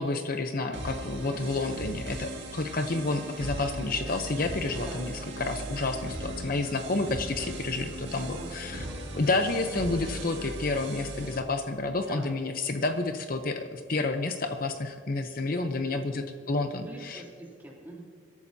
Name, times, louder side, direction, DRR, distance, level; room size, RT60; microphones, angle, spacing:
voice 1, 0.0-8.9 9.1-17.2, left 3 dB, 45° left, 6 dB, 0.7 m, -30 dB
sound 1, 0.7-11.4, right 1 dB, 60° right, 2.0 m, -38 dB
voice 2, 1.2-1.6 4.7-5.0 8.3-9.1 12.0-12.3 15.5-16.3 16.7-18.0, right 1 dB, 10° right, -4 dB, 2.9 m, -44 dB
24.0 x 13.0 x 2.7 m, 2.2 s
head